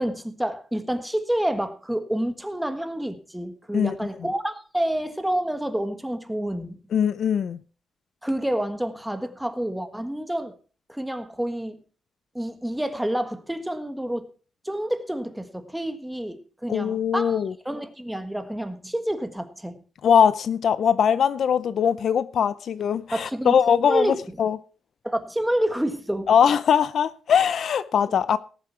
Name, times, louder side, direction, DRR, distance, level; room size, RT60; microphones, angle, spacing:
voice 1, 0.0-6.8 8.2-10.5 10.9-11.8 12.3-14.3 14.6-19.8 23.1-23.6 23.9-24.2 25.0-26.3 28.1-28.2, right 1 dB, 5° right, 1.4 m, -28 dB
voice 2, 6.9-7.6 16.7-17.5 20.0-24.6 26.3-28.4, left 7 dB, 65° left, 0.5 m, -21 dB
18.0 x 7.5 x 4.4 m
cardioid pair, 125°, 0 cm